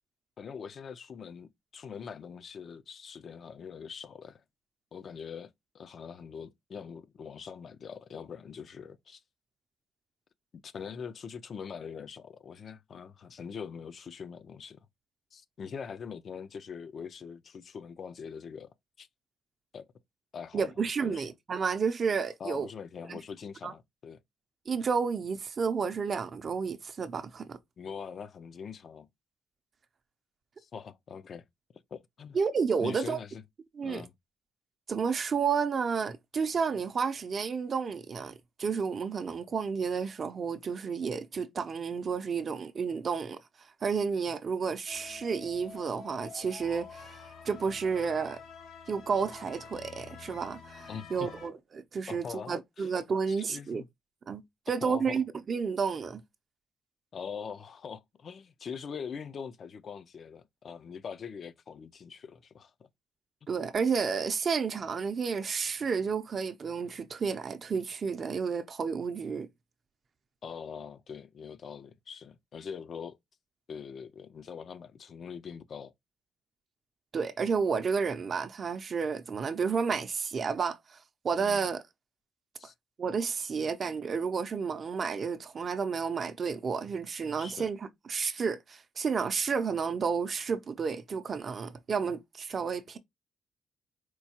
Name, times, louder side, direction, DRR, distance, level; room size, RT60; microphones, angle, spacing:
voice 1, 0.4-4.4 4.9-9.2 10.5-14.8 15.3-19.1 19.7-19.9 20.3-20.7 21.0-21.3 22.4-24.2 27.8-29.1 30.6-31.4 31.9-32.4 32.8-33.4 33.8-34.1 50.9-51.3 52.1-52.9 53.3-53.9 54.8-55.2 57.1-62.9 70.4-73.2 73.7-75.9 81.4-81.7 82.6-82.7 87.4-87.7, left 6 dB, 50° left, 0.4 m, -43 dB
voice 2, 20.5-22.7 23.1-23.2 23.6-23.7 24.7-27.6 32.3-33.2 33.7-34.0 34.9-43.4 43.8-47.2 47.4-48.4 48.9-53.8 54.3-56.2 63.5-69.5 77.1-81.0 81.2-81.8 83.0-93.0, right 5 dB, 45° right, 0.5 m, -31 dB
sound 1, 44.9-51.5, left 6 dB, 75° left, 1.7 m, -48 dB
4.4 x 2.3 x 2.8 m
cardioid pair, 90°, 0 cm